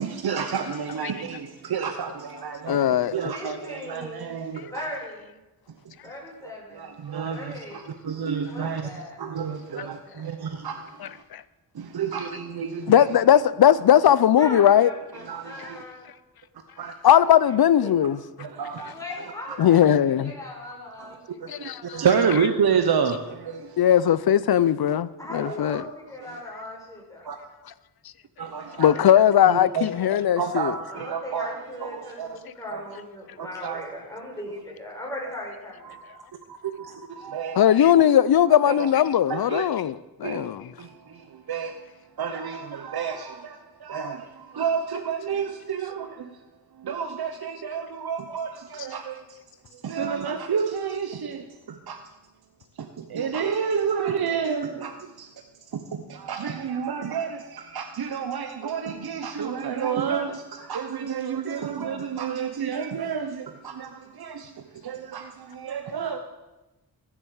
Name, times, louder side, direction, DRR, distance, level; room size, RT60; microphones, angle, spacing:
voice 1, 0.0-2.8 3.1-4.8 5.8-5.9 6.4-8.9 9.2-11.2 11.7-13.0 15.3-15.8 16.8-16.9 18.4-19.3 19.6-19.8 21.0-23.8 25.4-25.6 26.2-26.4 27.2-27.4 28.4-29.0 29.5-29.9 30.2-32.4 32.7-33.0 33.4-33.8 35.8-36.0 36.5-37.8 38.6-39.6 40.2-40.5 40.8-46.4 46.7-49.4 49.7-52.0 52.8-55.3 55.7-66.2, right 6 dB, 65° right, 1.0 m, -30 dB
voice 2, 0.7-1.4 2.3-3.3 4.5-4.7 11.0-11.4 12.9-14.9 15.6-15.7 17.0-18.2 18.9-19.0 19.6-20.3 21.5-22.5 23.8-25.9 27.6-27.7 28.8-30.8 32.5-32.6 37.5-40.8 48.8-48.9, left 10 dB, 65° left, 0.6 m, -20 dB
voice 3, 3.3-4.3 4.7-5.4 6.0-6.9 7.3-7.9 8.5-9.2 9.8-10.2 14.4-16.1 18.9-19.9 20.2-21.4 25.2-27.3 30.9-35.9, left 1 dB, 10° left, 5.5 m, -38 dB
15.0 x 7.4 x 6.5 m
cardioid pair, 70°, 40 cm